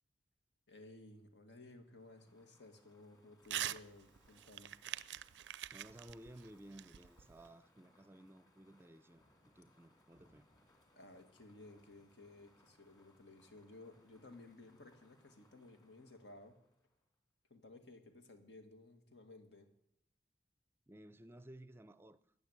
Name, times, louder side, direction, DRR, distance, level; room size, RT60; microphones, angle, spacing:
voice 1, 0.7-4.7 10.9-16.6 17.5-19.7, left 2 dB, 85° left, 2.1 m, -57 dB
sound 1, 1.7-17.1, left 1 dB, 20° left, 2.2 m, -72 dB
Crumpling crinkling / Tearing, 3.4-3.8 4.2-7.5, right 12 dB, 85° right, 0.4 m, -44 dB
voice 2, 5.7-10.5 20.9-22.3, right 1 dB, 15° right, 0.5 m, -56 dB
Thunder / Rain, 9.1-15.1, left 1 dB, 45° left, 2.6 m, -76 dB
15.0 x 9.4 x 8.0 m
head